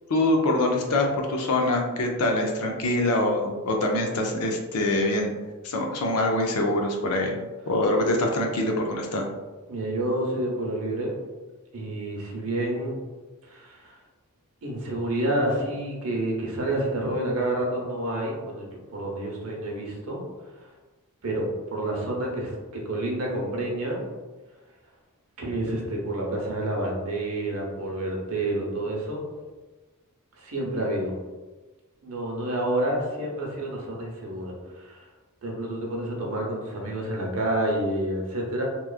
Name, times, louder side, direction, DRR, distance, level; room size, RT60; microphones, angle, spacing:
voice 1, 0.1-5.3 5.6-7.4 7.7-9.2, left 1 dB, 80° left, 2 dB, 0.5 m, -24 dB
voice 2, 9.7-11.1 11.7-13.0 13.5-13.9 14.6-20.3 21.2-24.0 25.4-29.2 30.4-31.1 32.0-35.0 35.4-38.6, right 1 dB, 70° right, -1 dB, 0.7 m, -29 dB
2.9 x 2.3 x 2.3 m, 1.2 s
head